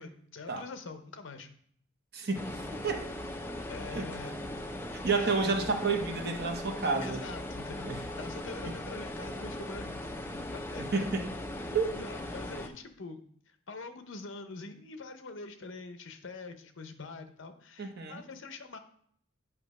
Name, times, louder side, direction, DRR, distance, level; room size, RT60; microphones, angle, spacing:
voice 1, 0.0-1.5 2.2-2.3 3.7-4.3 5.1-5.9 7.0-11.1 11.6-13.2 13.5-18.8, left 3 dB, 65° left, 8 dB, 0.7 m, -45 dB
voice 2, 2.1-3.0 3.9-4.1 4.9-7.2 7.9-8.0 8.6-8.7 10.8-11.3 11.7-11.9 17.8-18.2, right 4 dB, 50° right, 5 dB, 0.8 m, -30 dB
sound 1, 2.3-12.7, left 1 dB, 10° left, 0.4 m, -39 dB
8.3 x 2.9 x 5.3 m, 0.62 s
head